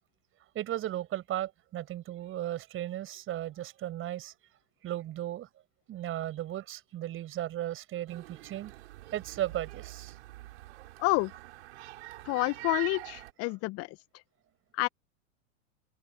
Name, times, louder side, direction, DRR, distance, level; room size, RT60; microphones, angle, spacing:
voice 1, 0.5-4.3 4.8-5.5 5.9-8.7 9.1-10.2, right 13 dB, 30° right, 5.9 m, -36 dB
sound 1, 8.1-13.3, right 19 dB, 55° right, 5.8 m, -44 dB
voice 2, 11.0-11.3 12.3-13.9 14.7-14.9, left 23 dB, 35° left, 1.3 m, -28 dB
figure-of-eight pair, 95°, 39 cm